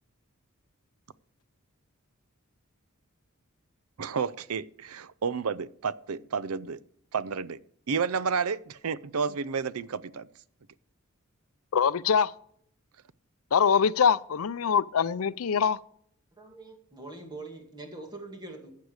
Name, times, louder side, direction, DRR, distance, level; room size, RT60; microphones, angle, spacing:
voice 1, 4.0-6.8 7.1-7.6 7.9-10.3, right 5 dB, 90° right, 0.6 m, -31 dB
voice 2, 11.7-12.3 13.5-15.8, left 7 dB, 75° left, 0.5 m, -23 dB
voice 3, 16.4-18.7, right 2 dB, 20° right, 2.4 m, -43 dB
14.5 x 8.4 x 4.8 m
head